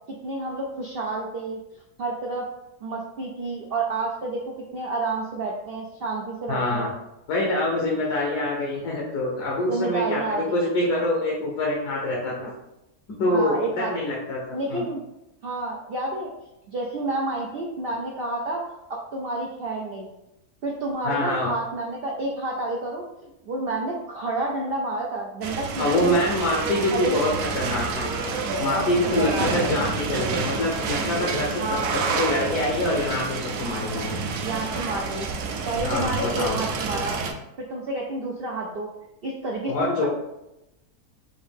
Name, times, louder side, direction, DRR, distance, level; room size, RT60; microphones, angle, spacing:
voice 1, 0.2-1.6 2.0-2.5 2.8-6.9 9.7-10.6 13.3-13.9 14.5-15.0 15.4-16.3 16.7-18.6 18.9-20.1 20.6-26.3 26.9-27.3 28.5-29.9 31.6-31.9 34.4-35.3 35.7-37.2 37.6-38.9 39.2-40.1, right 2 dB, 90° right, -1 dB, 0.5 m, -29 dB
voice 2, 6.5-6.9 7.3-12.5 13.2-14.8 21.0-21.5 25.8-28.3 28.6-31.6 32.1-34.2 35.8-36.6 39.7-40.1, left 1 dB, 80° left, -2 dB, 1.4 m, -25 dB
sound 1, 25.4-37.3, right 4 dB, 70° right, 0.9 m, -29 dB
4.9 x 2.7 x 3.5 m, 0.91 s
omnidirectional pair, 1.7 m